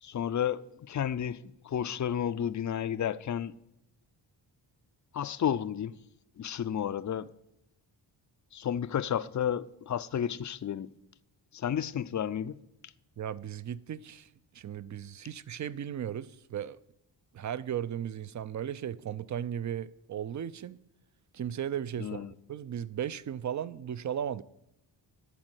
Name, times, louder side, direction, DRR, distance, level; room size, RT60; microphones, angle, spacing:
voice 1, 0.0-3.5 5.1-5.9 6.4-7.3 8.5-10.9 11.5-12.6 22.0-22.3, left 9 dB, 40° left, 0.5 m, -32 dB
voice 2, 13.2-16.8 17.3-20.8 21.3-24.4, right 9 dB, 40° right, 0.5 m, -36 dB
11.5 x 4.4 x 8.0 m
cardioid pair, 75°, 48 cm